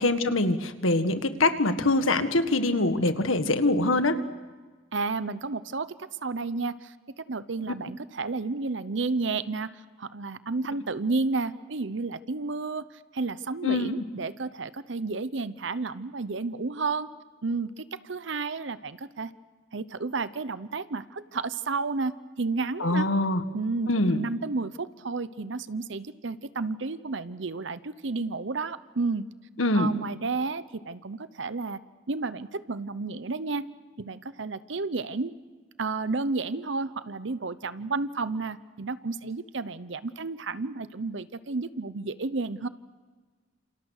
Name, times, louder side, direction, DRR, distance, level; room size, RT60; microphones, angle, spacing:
voice 1, 0.0-4.2 13.6-13.9 22.8-23.4 23.9-24.3 29.6-29.9, left 2 dB, 85° left, 9 dB, 1.7 m, -24 dB
voice 2, 4.9-17.1 17.4-19.3 19.7-23.1 23.5-29.3 29.7-31.8 32.1-33.7 34.0-35.3 35.8-42.7, right 3 dB, 65° right, 15 dB, 0.8 m, -31 dB
28.5 x 27.5 x 6.6 m, 1.4 s
head